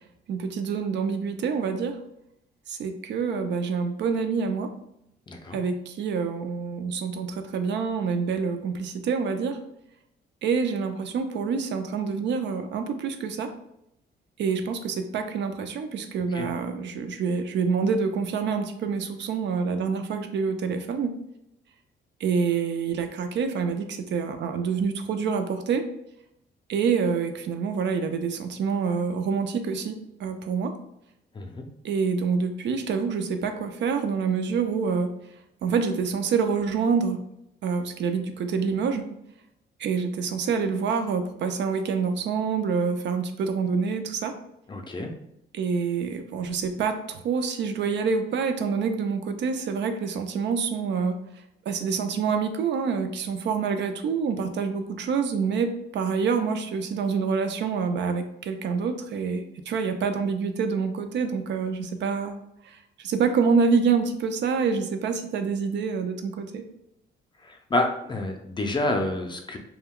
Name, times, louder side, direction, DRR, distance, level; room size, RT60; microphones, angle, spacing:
voice 1, 0.3-2.0 2.7-4.7 5.5-9.6 10.4-13.5 14.4-21.1 22.2-25.8 26.7-30.7 31.8-35.1 35.6-37.2 37.6-39.1 39.8-44.4 45.5-51.2 51.7-62.4 62.6-66.6, right 5 dB, 65° right, 7 dB, 0.4 m, -27 dB
voice 2, 5.3-5.6 16.3-16.5 31.4-31.7 44.7-45.1 67.7-69.6, left 2 dB, 25° left, 3 dB, 0.5 m, -28 dB
2.2 x 2.2 x 3.6 m, 0.80 s
cardioid pair, 90°, 20 cm